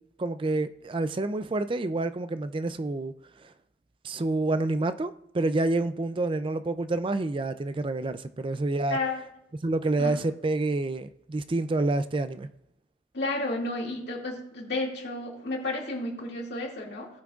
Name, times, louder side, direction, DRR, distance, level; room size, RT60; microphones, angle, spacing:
voice 1, 0.2-3.1 3.4-3.5 4.0-9.0 9.6-12.5, right 2 dB, 25° right, 0.4 m, -28 dB
voice 2, 8.9-9.2 10.0-10.1 13.1-17.1, left 2 dB, 60° left, 2.3 m, -32 dB
17.5 x 6.0 x 2.4 m
head